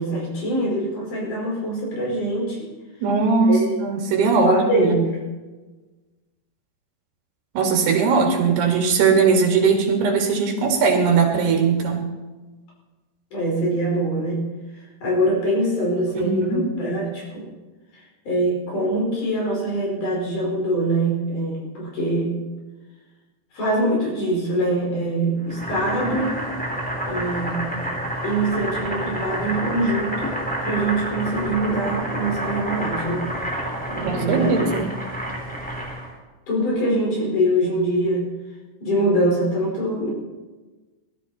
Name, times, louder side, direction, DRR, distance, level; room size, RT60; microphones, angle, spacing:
voice 1, 0.0-2.7 3.5-3.8 4.4-5.1 13.3-14.4 15.0-17.4 17.9-22.4 23.5-26.4 27.1-27.7 28.2-30.3 30.6-33.3 33.9-34.6 36.5-38.3 38.8-40.1, right 1 dB, 50° left, -2 dB, 6.2 m, -23 dB
voice 2, 3.0-3.5 3.8-4.9 7.5-12.1 16.1-16.7 34.1-34.9, right 5 dB, 75° right, 1 dB, 4.3 m, -19 dB
Boiling, 25.5-36.1, right 1 dB, ahead, 2.5 m, -29 dB
21.0 x 12.5 x 4.3 m, 1.2 s
omnidirectional pair, 4.9 m